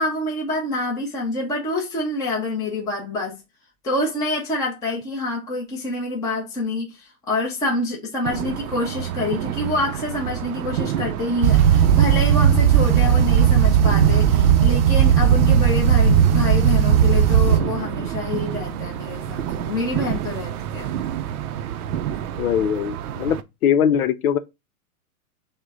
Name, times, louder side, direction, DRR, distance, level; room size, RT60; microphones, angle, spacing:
voice 1, 0.0-3.4 3.8-20.9, left 2 dB, 10° left, 0.7 m, -27 dB
sound 1, 8.2-23.4, right 10 dB, 85° right, 0.6 m, -30 dB
sound 2, 11.4-17.6, right 8 dB, 45° right, 0.7 m, -16 dB
voice 2, 22.4-23.4 23.6-24.4, left 8 dB, 75° left, 0.7 m, -20 dB
6.4 x 2.2 x 3.5 m
hypercardioid pair, 150°, 44 cm